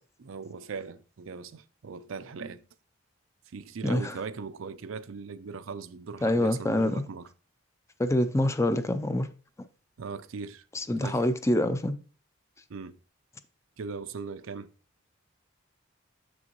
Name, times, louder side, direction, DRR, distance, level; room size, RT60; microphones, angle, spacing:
voice 1, 0.2-2.6 3.5-7.3 10.0-10.6 11.0-11.2 12.7-13.0 13.8-14.7, right 5 dB, 80° right, 0.5 m, -39 dB
voice 2, 3.8-4.2 6.2-7.0 8.0-9.3 10.7-11.9, left 1 dB, 15° left, 0.4 m, -26 dB
7.2 x 6.2 x 3.0 m
head